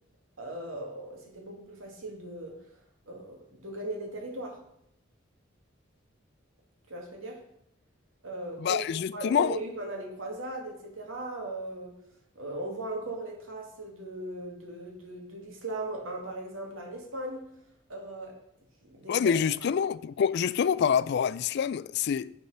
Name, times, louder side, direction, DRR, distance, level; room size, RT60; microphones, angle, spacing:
voice 1, 0.4-2.6 3.1-4.6 6.9-7.4 8.2-12.0 12.4-17.5 17.9-18.4 18.8-19.7, right 2 dB, 90° right, 2.3 m, -38 dB
voice 2, 8.6-9.6 19.1-22.3, left 7 dB, 55° left, 0.3 m, -26 dB
9.3 x 4.8 x 5.6 m
head